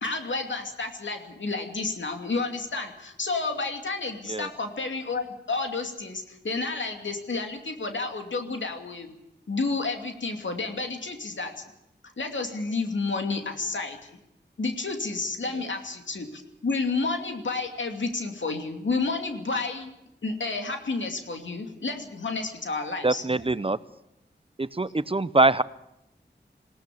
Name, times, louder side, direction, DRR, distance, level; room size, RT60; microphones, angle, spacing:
voice 1, 0.0-9.1 9.5-11.6 12.2-14.1 14.6-19.9 20.2-23.2, left 3 dB, 85° left, 4 dB, 2.6 m, -30 dB
voice 2, 23.0-23.8 24.6-25.6, right 2 dB, 30° right, 16 dB, 0.7 m, -23 dB
20.0 x 17.0 x 8.6 m, 0.85 s
wide cardioid pair, 50°, 19 cm